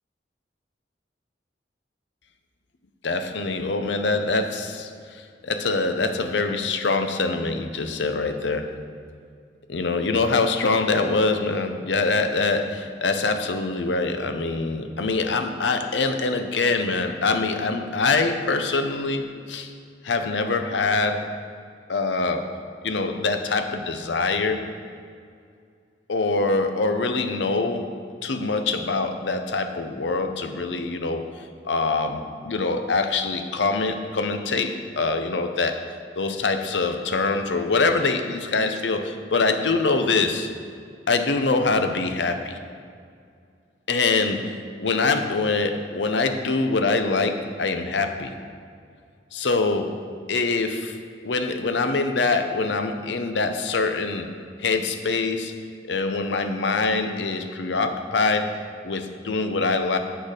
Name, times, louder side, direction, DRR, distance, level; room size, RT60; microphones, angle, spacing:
voice 1, 3.0-8.7 9.7-19.7 20.0-21.2 21.9-22.5 22.8-24.6 26.1-27.9 28.2-31.2 31.6-35.8 36.2-40.5 41.1-42.6 43.9-48.3 49.3-49.9 50.3-51.0 51.2-54.3 54.6-55.5 55.8-58.5 58.8-60.0, left 3 dB, 75° left, 7 dB, 0.7 m, -24 dB
7.8 x 6.6 x 5.0 m, 2.3 s
head